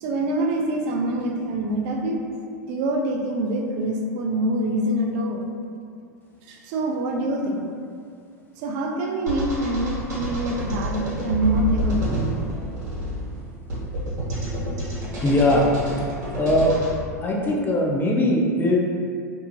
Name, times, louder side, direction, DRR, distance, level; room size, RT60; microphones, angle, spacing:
voice 1, 0.0-2.2 2.7-5.5 6.5-7.7 8.6-12.4, right 1 dB, 50° right, 2 dB, 0.4 m, -25 dB
sound 1, 9.3-16.9, right 1 dB, 65° right, 0.9 m, -28 dB
voice 2, 15.2-15.7 16.3-16.8 17.2-18.8, left 1 dB, 20° left, -2 dB, 0.5 m, -20 dB
2.6 x 2.1 x 2.8 m, 2.2 s
hypercardioid pair, 90°, 9 cm